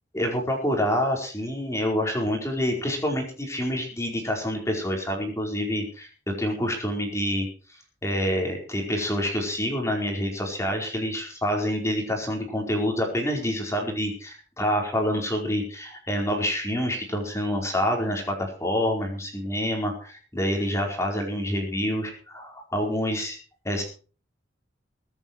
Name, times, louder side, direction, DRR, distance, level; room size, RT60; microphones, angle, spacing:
voice 1, 0.1-6.1 6.4-7.5 8.0-23.4 23.6-23.8, equal, 15° left, 1 dB, 4.7 m, -27 dB
23.0 x 9.2 x 4.7 m, 0.38 s
head